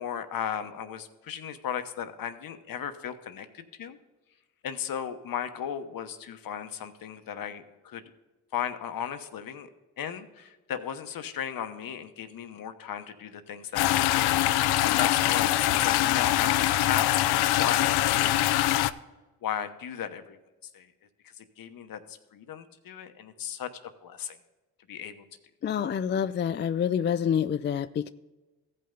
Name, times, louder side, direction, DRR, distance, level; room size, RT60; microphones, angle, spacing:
voice 1, 0.0-4.0 4.6-8.0 8.5-9.7 10.0-17.1 17.6-18.9 19.4-20.4 20.7-20.9 21.4-23.7 24.0-24.4 24.9-25.2, left 9 dB, 65° left, 9 dB, 1.0 m, -36 dB
sound 1, 13.8-18.9, left 14 dB, 90° left, 0.5 m, -23 dB
voice 2, 25.6-28.1, left 8 dB, 30° left, 11 dB, 0.4 m, -27 dB
15.0 x 5.5 x 3.8 m, 1.1 s
cardioid pair, 70°, 38 cm